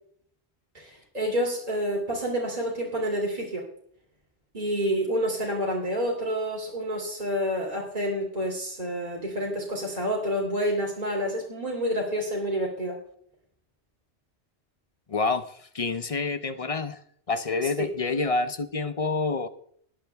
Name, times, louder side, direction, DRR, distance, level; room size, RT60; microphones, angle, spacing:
voice 1, 0.7-3.6 4.5-13.0 17.8-17.9, equal, 35° right, -3 dB, 3.2 m, -28 dB
voice 2, 15.1-17.0 17.3-19.5, left 3 dB, 35° left, 11 dB, 0.7 m, -28 dB
20.0 x 9.8 x 3.5 m, 0.65 s
omnidirectional pair, 1.1 m